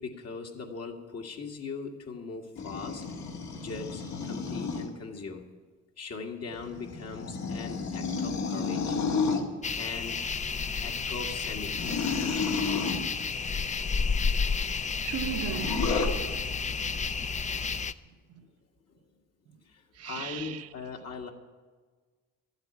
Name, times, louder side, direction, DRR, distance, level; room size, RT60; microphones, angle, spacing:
voice 1, 0.0-3.1 3.5-5.5 6.0-9.0 9.8-10.3 10.8-12.0 18.9-19.0 19.6-21.3, left 4 dB, 55° left, 2.0 m, -40 dB
sound 1, 2.6-4.9 6.5-9.5 11.7-13.1 15.5-16.1, left 4 dB, 70° left, 2.0 m, -31 dB
sound 2, 9.6-17.9, left 5 dB, 25° left, 0.5 m, -31 dB
voice 2, 15.0-16.5 19.9-20.7, right 9 dB, 55° right, 0.8 m, -37 dB
13.0 x 8.0 x 9.6 m
cardioid pair, 90°, 30 cm